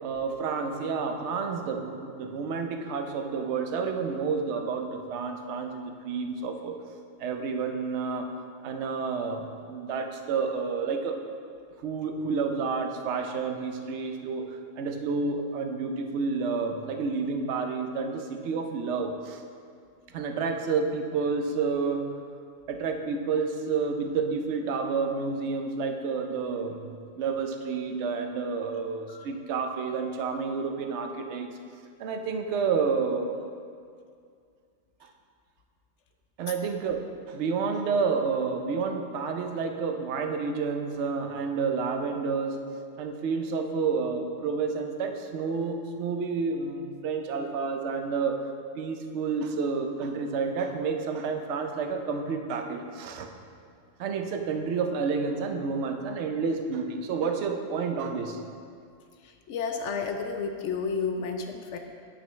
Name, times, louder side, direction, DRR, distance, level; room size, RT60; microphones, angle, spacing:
voice 1, 0.0-6.7 7.2-8.3 8.6-11.2 11.8-19.4 20.1-22.1 22.7-26.9 27.2-31.5 32.0-33.3 35.0-35.1 36.4-42.6 43.0-48.4 48.8-53.3 54.0-58.4, right 5 dB, 60° right, 5 dB, 0.8 m, -30 dB
voice 2, 59.5-61.8, left 5 dB, 65° left, 5 dB, 0.8 m, -31 dB
9.1 x 6.8 x 3.1 m, 2.3 s
omnidirectional pair, 1.4 m